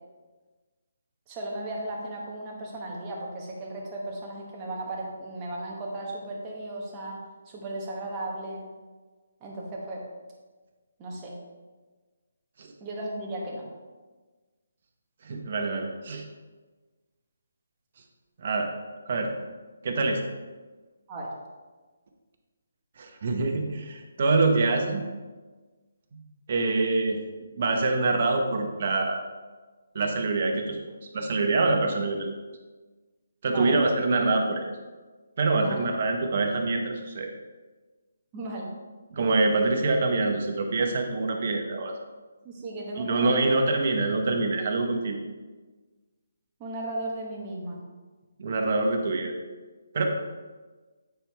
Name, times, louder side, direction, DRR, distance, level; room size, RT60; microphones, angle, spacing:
voice 1, 1.3-7.2 7.5-8.7 9.4-10.0 11.0-11.4 12.8-13.6 21.1-21.3 33.5-33.8 35.5-35.9 38.3-38.7 42.4-43.5 46.6-47.8, right 1 dB, 20° right, -3 dB, 1.2 m, -35 dB
voice 2, 15.2-16.2 18.4-18.7 19.1-19.3 19.8-20.2 23.0-25.0 26.1-26.2 26.5-27.2 27.6-29.2 29.9-30.8 31.1-32.3 33.4-34.7 35.4-37.3 39.1-41.9 43.0-45.2 48.4-49.3 49.9-50.0, right 3 dB, 45° right, 3 dB, 1.0 m, -25 dB
8.2 x 4.6 x 3.4 m, 1.3 s
hypercardioid pair, 160°, 0 cm